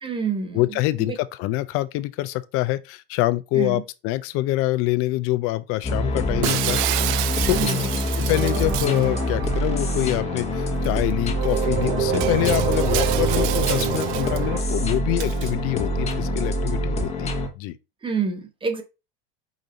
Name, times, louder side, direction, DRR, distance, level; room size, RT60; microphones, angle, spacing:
voice 1, 0.0-1.2 3.5-3.8 7.5-7.9 18.0-18.8, right 5 dB, 15° right, 0.9 m, -28 dB
voice 2, 0.5-6.8 7.5-7.7 8.2-17.8, left 17 dB, 50° left, 0.5 m, -25 dB
sound 1, 5.8-17.5, left 1 dB, 20° left, 1.1 m, -25 dB
Shatter, 6.4-9.0 10.8-10.9 11.4-11.5 12.1-14.4 15.2-15.5, right 16 dB, 55° right, 0.4 m, -29 dB
sound 2, 8.3-10.7 11.3-14.6, right 8 dB, 90° right, 0.8 m, -27 dB
5.1 x 2.7 x 3.8 m
supercardioid pair, 115°, 30 cm